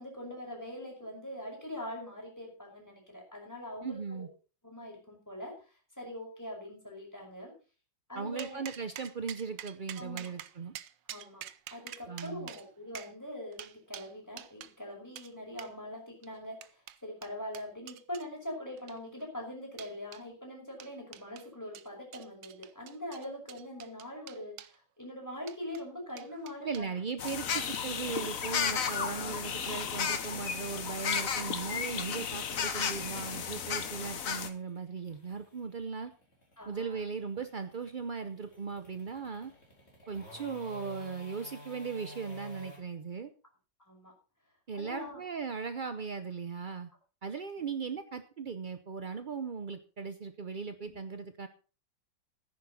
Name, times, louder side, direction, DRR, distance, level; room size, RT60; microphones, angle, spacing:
voice 1, 0.0-4.3 4.6-7.5 8.1-8.6 10.0-10.3 11.1-27.2 36.6-37.0 40.0-40.1 43.8-44.1 44.7-45.2 50.8-51.0, left 1 dB, 10° left, 0 dB, 5.6 m, -43 dB
voice 2, 3.8-4.3 8.1-10.7 12.1-12.5 26.6-36.1 36.7-39.5 40.1-43.3 44.7-46.9 47.2-51.5, right 5 dB, 55° right, 9 dB, 0.5 m, -38 dB
sound 1, 8.4-14.7 15.2-15.3 15.6-15.7 16.2-18.3 18.8-19.2 19.8-20.2 20.8-21.5 21.7-24.8 25.4-25.8 26.2-26.9 27.3-27.4 27.7-28.1, right 12 dB, 80° right, 1.4 m, -47 dB
sound 2, 27.2-34.5, left 7 dB, 50° left, 1.4 m, -33 dB
sound 3, 34.2-42.8, equal, 35° left, 4.3 m, -53 dB
14.5 x 10.5 x 4.2 m, 0.36 s
omnidirectional pair, 2.0 m